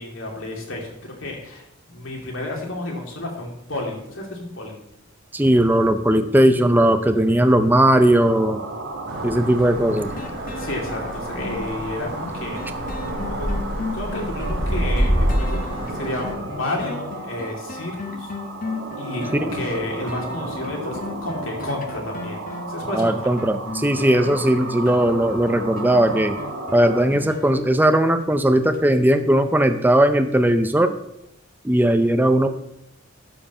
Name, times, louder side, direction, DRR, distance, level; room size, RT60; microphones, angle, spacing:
voice 1, 0.0-4.8 10.6-12.7 13.3-13.6 13.9-15.6 15.9-18.3 19.0-23.4, left 2 dB, 70° left, 0 dB, 2.6 m, -31 dB
voice 2, 5.3-8.6 9.2-10.1 19.4-19.5 22.9-26.4 26.7-30.9 31.6-32.5, right 1 dB, 10° right, 8 dB, 0.5 m, -18 dB
sound 1, 7.8-27.0, right 2 dB, 75° right, 1.6 m, -34 dB
sound 2, 9.1-16.3, equal, 50° right, 3.0 m, -27 dB
sound 3, 9.6-28.3 28.7-28.8, left 3 dB, 45° left, 1.0 m, -36 dB
12.0 x 5.2 x 5.6 m, 0.81 s
head